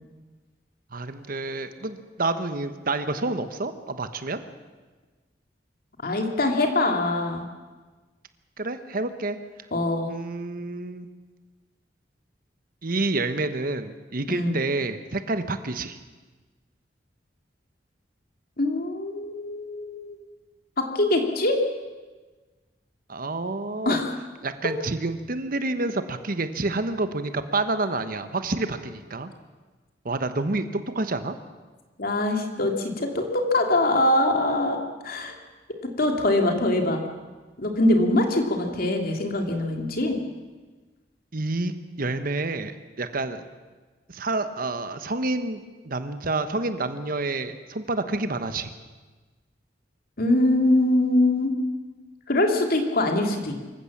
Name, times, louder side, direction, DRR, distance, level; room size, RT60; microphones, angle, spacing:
voice 1, 0.9-4.4 8.6-9.4 10.1-11.1 12.8-16.0 23.1-24.0 24.4-29.3 30.0-31.4 41.3-41.7 42.0-43.4 44.1-48.7, right 2 dB, 50° right, 10 dB, 1.2 m, -28 dB
voice 2, 6.0-7.4 9.7-10.1 14.3-14.6 18.6-20.2 20.8-21.6 23.8-24.1 32.0-35.3 35.8-37.0 37.6-40.2 50.2-51.5 52.3-53.5, left 1 dB, 55° left, 3 dB, 2.8 m, -23 dB
25.0 x 15.0 x 7.4 m, 1.3 s
head